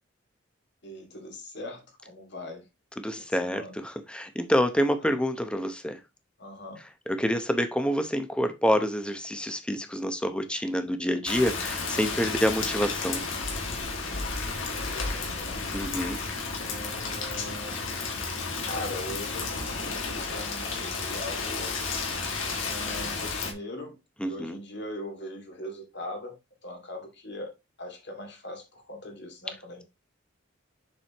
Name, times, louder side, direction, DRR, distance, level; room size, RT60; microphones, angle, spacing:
voice 1, 0.8-2.6 3.4-3.8 5.0-5.1 6.4-6.8 14.6-15.6 16.6-17.8 18.6-21.8 22.6-26.4 26.6-27.5 27.8-29.8, left 1 dB, 60° left, 2.5 m, -40 dB
voice 2, 3.0-6.0 7.1-13.2 15.7-16.2 24.2-24.6, equal, 5° left, 0.9 m, -27 dB
Rain, 11.3-23.5, left 4 dB, 80° left, 2.1 m, -32 dB
7.4 x 6.2 x 3.0 m
head